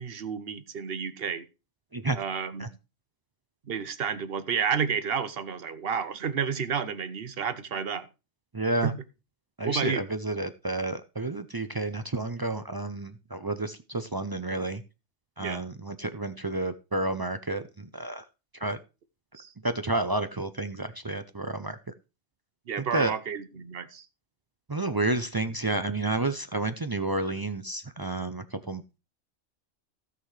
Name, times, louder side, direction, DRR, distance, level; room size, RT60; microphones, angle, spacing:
voice 1, 0.0-1.4 2.2-2.7 3.7-8.1 8.8-8.9 9.6-10.0 15.4-15.6 19.4-19.5 22.7-24.0, right 7 dB, 55° right, 13 dB, 1.0 m, -31 dB
voice 2, 8.5-8.9 9.6-14.8 15.4-18.2 18.5-18.8 19.6-21.8 22.8-23.1 24.7-29.0, right 2 dB, 40° right, 10 dB, 0.3 m, -30 dB
16.0 x 6.2 x 3.2 m, 0.28 s
omnidirectional pair, 1.2 m